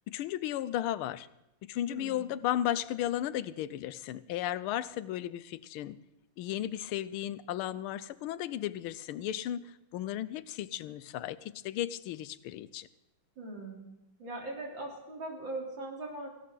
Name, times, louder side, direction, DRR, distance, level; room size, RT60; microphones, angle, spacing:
voice 1, 0.1-1.3 1.6-6.0 6.4-12.9, left 12 dB, 90° left, 16 dB, 1.5 m, -35 dB
voice 2, 1.9-2.2 13.4-13.9 14.2-16.3, right 2 dB, 65° right, -1 dB, 4.3 m, -40 dB
18.5 x 16.0 x 3.9 m, 0.92 s
omnidirectional pair, 2.3 m